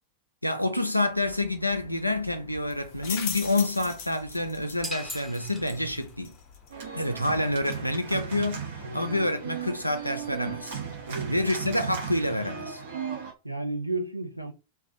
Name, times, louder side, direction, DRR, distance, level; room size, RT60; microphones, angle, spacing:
voice 1, 0.4-6.4 6.9-8.7 8.9-10.8 11.3-12.8, left 1 dB, 90° left, 0.4 m, -28 dB
sound 1, 1.1-11.7, left 6 dB, 45° left, 0.6 m, -43 dB
sound 2, 4.8-6.3, left 1 dB, 5° left, 0.7 m, -39 dB
Organ, 6.7-13.3, right 7 dB, 60° right, 0.7 m, -36 dB
voice 2, 8.8-9.2 11.1-11.3 11.7-11.8 13.4-14.5, right 2 dB, 90° right, 0.4 m, -33 dB
2.4 x 2.1 x 2.5 m
figure-of-eight pair, 90°, 0 cm